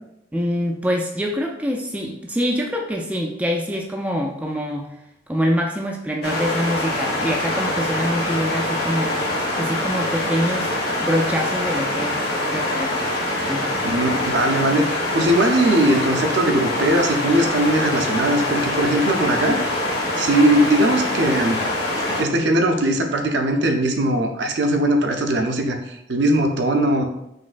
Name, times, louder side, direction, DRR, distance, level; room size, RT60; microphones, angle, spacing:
voice 1, 0.3-5.0 5.3-9.2 9.6-10.7 11.0-12.2 12.5-13.0 13.5-13.7, equal, 5° right, 0 dB, 0.3 m, -25 dB
sound 1, 6.2-22.2, left 1 dB, 55° left, 1.3 m, -24 dB
voice 2, 13.8-19.8 20.2-21.6 22.1-27.0, right 1 dB, 65° right, 4 dB, 0.5 m, -20 dB
5.1 x 3.1 x 2.5 m, 0.83 s
head